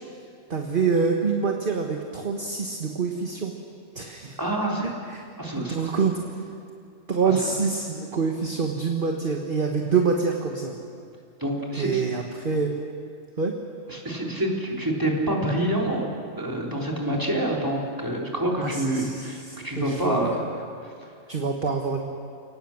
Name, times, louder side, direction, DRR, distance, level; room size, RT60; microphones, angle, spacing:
voice 1, 0.5-3.5 3.9-4.4 4.8-5.2 5.6-6.2 7.1-10.7 11.8-12.7 13.4-13.5 18.6-20.4 21.3-22.0, right 5 dB, 40° right, 3 dB, 1.5 m, -26 dB
voice 2, 4.4-4.9 5.4-5.8 7.2-7.3 11.4-12.0 13.9-16.1 16.4-20.4, right 1 dB, 15° right, -2 dB, 3.8 m, -27 dB
30.0 x 18.5 x 7.3 m, 2.4 s
omnidirectional pair, 1.5 m